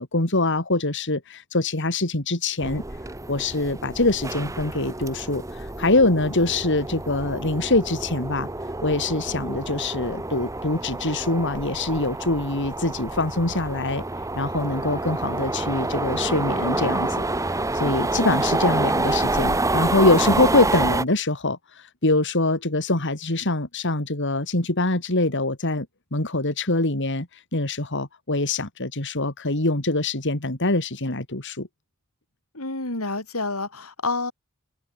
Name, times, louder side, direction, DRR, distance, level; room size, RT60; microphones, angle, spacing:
voice 1, 0.0-2.8 3.3-8.5 8.8-14.0 14.4-25.9 26.1-31.7, left 2 dB, 60° left, 3.5 m, -24 dB
sound 1, 2.6-21.0, right 2 dB, 15° right, 1.3 m, -28 dB
voice 2, 32.5-34.3, left 3 dB, 90° left, 7.2 m, -28 dB
head